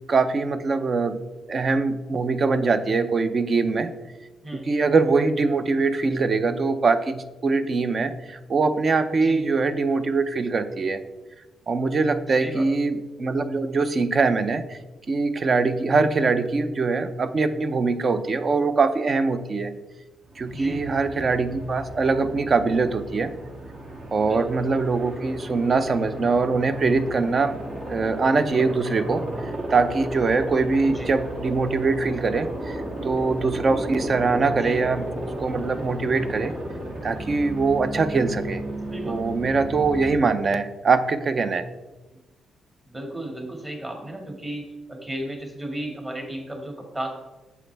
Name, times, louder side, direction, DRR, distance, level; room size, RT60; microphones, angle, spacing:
voice 1, 0.1-1.2 1.5-3.9 4.5-11.0 11.7-14.8 15.1-19.7 20.4-23.3 24.1-27.5 27.9-35.0 35.4-36.5 37.0-38.6 39.1-41.6, right 4 dB, 40° right, 11 dB, 0.6 m, -23 dB
voice 2, 9.1-9.5 12.3-12.7 20.5-20.9 24.2-24.4 30.8-31.1 34.6-34.8 38.9-39.3 42.9-47.1, right 1 dB, 25° right, 2 dB, 1.9 m, -34 dB
Aircraft, 20.3-40.2, right 1 dB, 60° right, 2.5 m, -34 dB
8.2 x 7.4 x 3.4 m, 1.2 s
cardioid pair, 110°, 0 cm